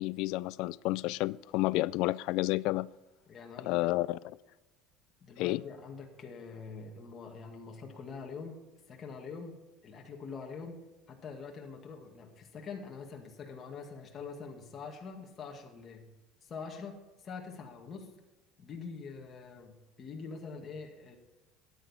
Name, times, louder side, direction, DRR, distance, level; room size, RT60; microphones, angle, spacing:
voice 1, 0.0-2.9 3.6-4.2 5.4-5.6, left 19 dB, 65° left, 0.3 m, -30 dB
voice 2, 3.3-4.0 5.2-8.6 8.9-16.1 16.4-17.0 17.2-18.1 18.6-21.2, left 5 dB, 30° left, 2.0 m, -45 dB
13.5 x 10.0 x 4.3 m
cardioid pair, 140°, 0 cm